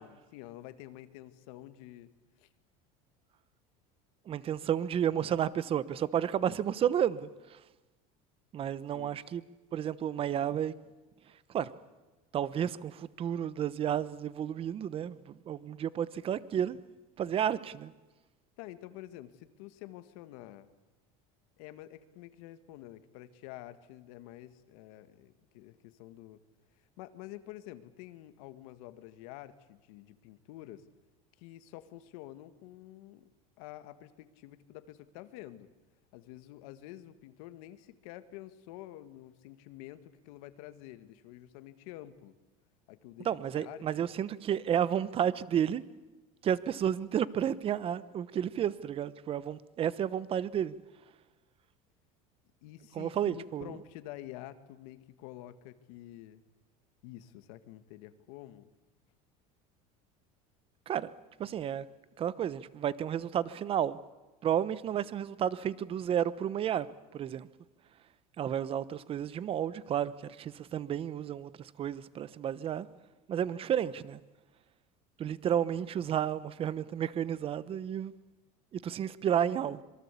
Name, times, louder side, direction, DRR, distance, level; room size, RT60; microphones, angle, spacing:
voice 1, 0.0-2.5 5.1-5.4 8.9-9.2 18.6-20.7 21.6-26.4 26.8-30.9 31.4-35.7 36.1-42.3 42.9-44.1 52.6-56.4 57.0-58.7, left 14 dB, 75° left, 1.9 m, -49 dB
voice 2, 4.3-7.6 8.5-9.4 9.7-10.7 11.5-11.7 12.3-16.8 17.2-17.9 43.2-45.8 46.4-50.7 52.9-53.7 60.9-61.1 61.4-61.8 62.2-64.0 64.4-66.9 67.1-67.5 68.4-72.9 73.3-74.2 75.2-78.1 78.7-79.8, right 9 dB, 30° right, 1.0 m, -31 dB
26.0 x 23.5 x 8.4 m
cardioid pair, 145°, 18 cm